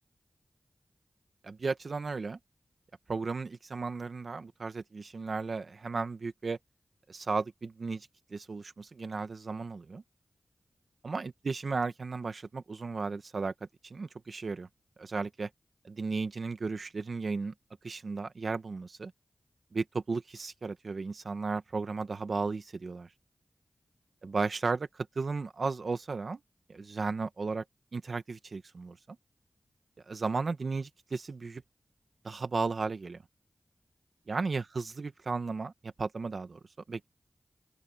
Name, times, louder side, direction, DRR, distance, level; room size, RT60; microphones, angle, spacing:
voice 1, 1.4-2.4 3.1-6.6 7.1-10.0 11.0-14.7 15.0-15.5 15.8-17.5 17.8-19.1 19.7-23.1 24.2-26.4 26.7-27.6 27.9-29.2 30.1-31.6 32.2-33.2 34.3-36.6 36.9-37.1, right 4 dB, 70° right, 1.6 m, -35 dB
open air
cardioid pair, 50°, 0 cm